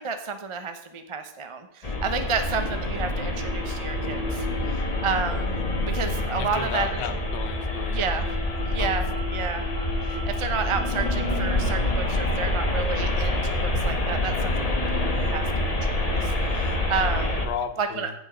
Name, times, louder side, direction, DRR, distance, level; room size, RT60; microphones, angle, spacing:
voice 1, 0.0-4.4 4.7-5.5 5.8-7.0 7.9-8.3 8.7-9.7 10.0-17.5 17.8-18.1, right 5 dB, 30° right, 7 dB, 0.5 m, -31 dB
sound 1, 1.8-17.5, left 1 dB, 25° left, 1.2 m, -26 dB
voice 2, 6.4-8.0 8.5-9.0 17.4-18.1, left 8 dB, 65° left, 10 dB, 1.4 m, -34 dB
15.5 x 5.4 x 5.1 m, 0.85 s
omnidirectional pair, 2.0 m